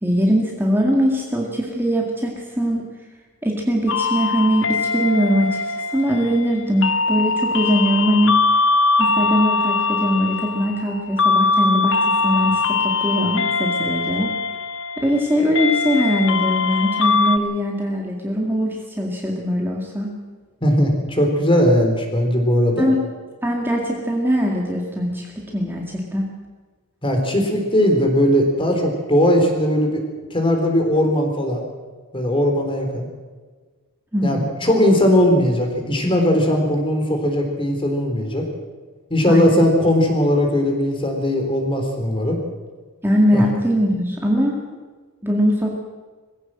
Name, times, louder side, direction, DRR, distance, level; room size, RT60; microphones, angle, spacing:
voice 1, 0.0-2.8 3.4-8.4 9.0-12.0 12.2-14.3 15.0-20.1 22.8-23.0 23.4-26.3 34.1-34.7 39.3-39.6 43.0-44.6 45.2-45.8, equal, 10° right, -1 dB, 2.1 m, -21 dB
sound 1, 3.9-17.4, left 4 dB, 60° left, 0.9 m, -21 dB
voice 2, 20.6-22.9 27.0-30.0 30.3-31.6 32.1-33.1 34.2-38.5 39.1-42.4 43.3-43.4, equal, 25° left, 3 dB, 3.9 m, -18 dB
21.5 x 16.0 x 7.7 m, 1.4 s
head